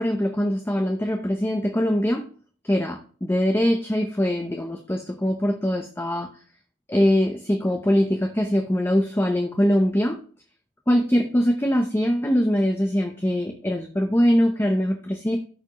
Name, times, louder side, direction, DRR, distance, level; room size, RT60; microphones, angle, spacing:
voice 1, 0.0-2.3 2.6-6.3 6.9-10.2 10.9-15.4, equal, 10° left, 4 dB, 0.8 m, -22 dB
13.5 x 4.6 x 3.1 m, 0.42 s
head